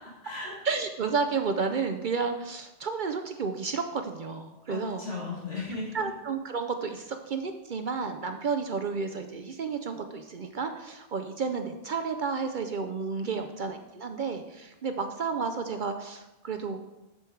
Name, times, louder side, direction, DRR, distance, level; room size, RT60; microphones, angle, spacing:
voice 1, 0.0-0.6 4.7-6.0 13.2-13.7, left 3 dB, 60° left, -5 dB, 2.6 m, -37 dB
voice 2, 0.6-5.0 5.9-16.8, right 5 dB, 55° right, 6 dB, 0.6 m, -31 dB
8.0 x 6.9 x 4.5 m, 0.98 s
omnidirectional pair, 1.2 m